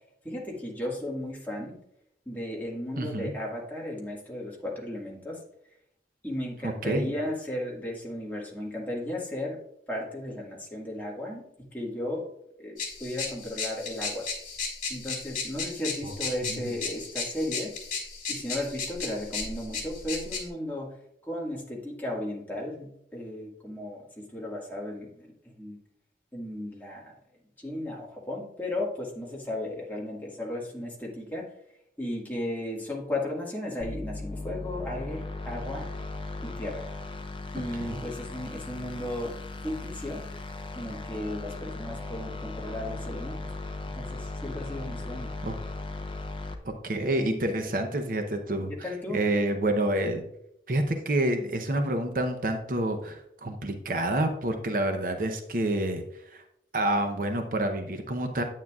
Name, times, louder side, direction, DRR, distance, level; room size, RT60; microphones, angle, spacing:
voice 1, 0.2-1.8 2.3-5.4 6.2-9.6 9.9-11.4 11.7-12.3 12.6-14.3 14.9-17.7 18.3-20.9 21.2-25.8 26.3-27.1 27.6-31.5 32.0-35.9 36.4-36.9 37.5-39.3 39.6-40.2 40.8-43.4 44.0-45.3 48.7-49.2, left 1 dB, 10° left, -4 dB, 1.8 m, -35 dB
voice 2, 3.0-3.3 6.6-7.1 16.0-16.1 16.4-16.7 37.8-38.0 45.4-45.5 46.6-50.2 50.7-56.0 56.3-56.4 56.7-58.4, right 1 dB, 50° right, 5 dB, 0.7 m, -28 dB
sound 1, 12.8-20.5, left 4 dB, 45° left, 2.6 m, -35 dB
sound 2, 33.8-46.5, left 2 dB, 30° left, 0.7 m, -37 dB
9.4 x 9.0 x 2.4 m, 0.77 s
head